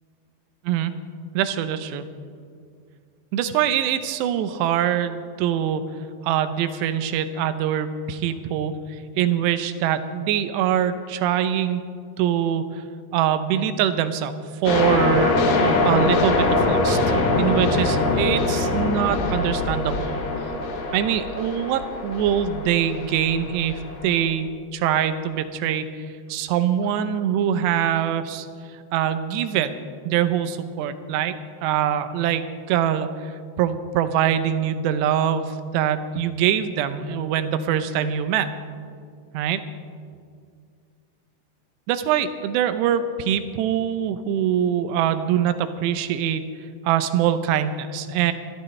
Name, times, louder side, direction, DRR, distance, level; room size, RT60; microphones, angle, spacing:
voice 1, 1.3-2.0 3.3-5.9 6.2-11.8 12.2-12.7 13.1-14.3 14.6-15.4 15.8-17.0 17.4-20.2 20.9-25.9 26.3-28.5 28.9-29.8 30.1-31.3 31.6-33.3 33.6-38.5 39.3-39.6 41.9-46.4 46.8-48.3, right 9 dB, 90° right, 11 dB, 2.9 m, -23 dB
sound 1, 14.7-24.3, left 2 dB, 85° left, 3.8 m, -23 dB
27.0 x 12.5 x 3.2 m, 2.2 s
omnidirectional pair, 4.8 m